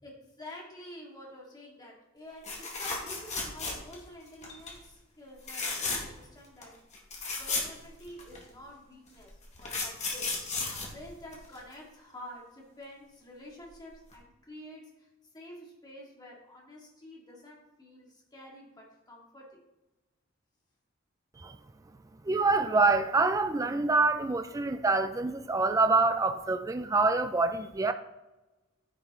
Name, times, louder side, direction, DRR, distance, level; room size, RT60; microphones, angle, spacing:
voice 1, 0.0-6.8 7.3-10.4 10.7-15.1 15.3-19.6, left 1 dB, 20° left, 2.2 m, -49 dB
sound 1, 2.4-4.1 4.4-4.8 5.4-6.2 6.6-6.7 6.9-8.4 9.2-11.7 13.6-13.8 14.1-14.2, left 3 dB, 35° left, 2.0 m, -34 dB
voice 2, 22.3-27.9, right 3 dB, 15° right, 0.4 m, -26 dB
9.8 x 9.3 x 3.7 m
head